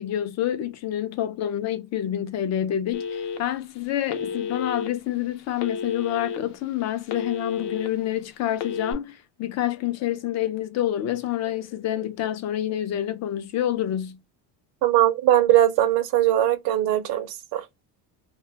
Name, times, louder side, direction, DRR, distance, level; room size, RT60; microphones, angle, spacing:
voice 1, 0.0-14.2, left 12 dB, 40° left, 0.4 m, -28 dB
Telephone, 2.9-3.6 4.1-4.9 5.6-6.4 6.8-7.9 8.5-8.9, left 6 dB, 80° left, 0.7 m, -31 dB
voice 2, 14.8-17.6, right 13 dB, 65° right, 0.6 m, -20 dB
2.3 x 2.1 x 3.3 m
cardioid pair, 145°, 41 cm